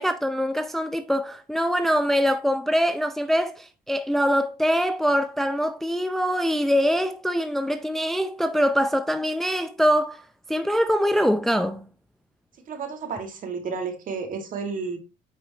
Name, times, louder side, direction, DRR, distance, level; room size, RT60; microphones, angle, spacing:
voice 1, 0.0-10.2 10.5-11.8, equal, ahead, 0.5 m, -23 dB
voice 2, 12.7-15.0, right 5 dB, 50° right, 2.0 m, -31 dB
8.9 x 5.1 x 2.9 m
cardioid pair, 110°, 17 cm